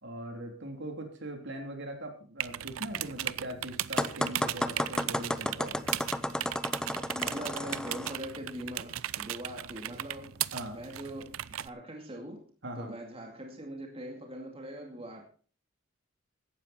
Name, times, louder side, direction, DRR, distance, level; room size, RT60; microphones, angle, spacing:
voice 1, 0.0-5.7 10.5-10.8 12.6-12.9, right 1 dB, 60° right, 4 dB, 3.3 m, -40 dB
sound 1, 2.4-11.7, right 12 dB, 80° right, 0.5 m, -37 dB
sound 2, 4.0-8.2, left 1 dB, 5° left, 0.6 m, -32 dB
voice 2, 6.9-10.4 10.7-12.5 12.8-15.2, right 1 dB, 30° right, 2 dB, 2.4 m, -42 dB
16.5 x 12.5 x 4.4 m, 0.41 s
head